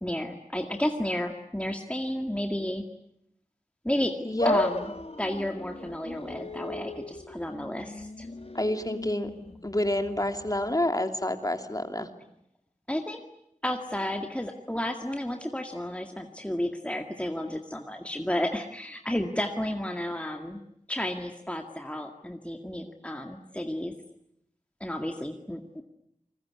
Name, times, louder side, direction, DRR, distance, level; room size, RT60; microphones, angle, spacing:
voice 1, 0.0-2.8 3.8-4.2 4.4-4.9 5.2-8.3 12.9-13.2 13.6-20.6 20.9-23.9 24.8-25.8, left 1 dB, 10° left, 4 dB, 2.0 m, -32 dB
voice 2, 4.2-4.6 8.5-9.3 9.6-12.1, left 1 dB, 25° left, 7 dB, 2.8 m, -28 dB
sound 1, 4.4-10.8, left 2 dB, 45° left, 1.7 m, -35 dB
28.5 x 21.0 x 9.7 m, 0.77 s
wide cardioid pair, 55°, 14 cm